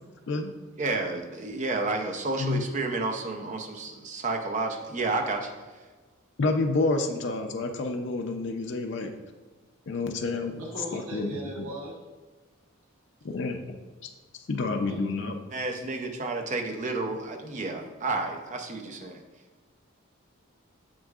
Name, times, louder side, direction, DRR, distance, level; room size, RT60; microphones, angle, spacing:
voice 1, 0.8-5.5 15.5-19.2, right 3 dB, 35° right, 4 dB, 0.6 m, -31 dB
voice 2, 6.4-9.1 9.9-10.5 10.9-11.3 11.6-11.7 13.3-13.6 14.5-15.3, left 3 dB, 55° left, 4 dB, 0.5 m, -28 dB
voice 3, 10.5-12.0 14.8-15.0, right 1 dB, 85° right, -4 dB, 1.5 m, -38 dB
6.3 x 6.2 x 2.4 m, 1.3 s
head